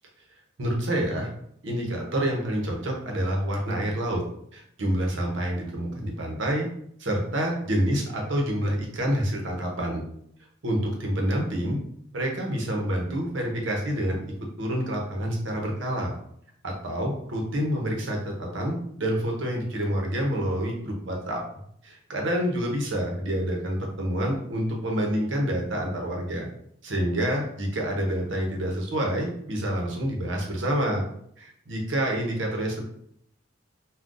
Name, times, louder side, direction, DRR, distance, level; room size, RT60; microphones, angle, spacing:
voice 1, 0.6-1.3 1.6-4.2 4.5-6.7 7.0-10.0 10.6-11.8 12.1-14.3 14.6-16.1 16.6-21.4 21.8-26.5 26.8-31.0 31.4-32.8, equal, 75° right, 0 dB, 0.8 m, -27 dB
3.6 x 2.2 x 2.5 m, 0.68 s
head